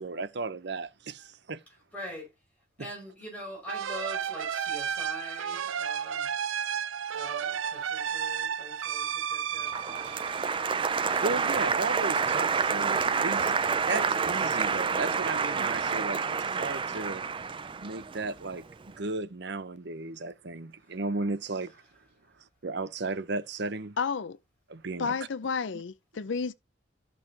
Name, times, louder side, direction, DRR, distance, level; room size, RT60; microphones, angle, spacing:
voice 1, 0.0-1.6 11.2-13.6 13.9-17.2 17.8-21.8 22.6-24.0 24.7-25.2 25.4-25.8, right 3 dB, 60° right, 0.8 m, -35 dB
voice 2, 1.9-2.3 2.8-6.3 7.1-12.8 13.9-14.2, equal, 10° left, 5.5 m, -44 dB
sound 1, 3.7-11.1, right 8 dB, 90° right, 0.5 m, -33 dB
Applause, 9.7-18.7, right 5 dB, 25° right, 0.4 m, -28 dB
voice 3, 24.0-24.4 25.0-26.5, left 5 dB, 70° left, 0.5 m, -31 dB
14.0 x 5.5 x 2.8 m
head